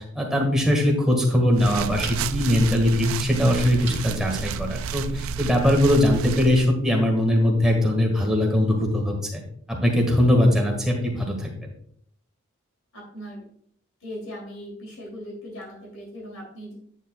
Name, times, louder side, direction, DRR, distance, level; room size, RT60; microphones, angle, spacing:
voice 1, 0.1-9.4 9.7-11.5, left 1 dB, ahead, -1 dB, 1.7 m, -21 dB
sound 1, 1.5-6.7, right 6 dB, 65° right, 0.4 m, -31 dB
sound 2, 2.0-2.6 3.8-4.1 4.7-4.8 5.1-5.2, right 6 dB, 50° right, 1.5 m, -38 dB
voice 2, 12.9-13.4 14.0-16.7, equal, 65° left, -3 dB, 2.9 m, -39 dB
9.2 x 8.5 x 2.3 m, 0.65 s
head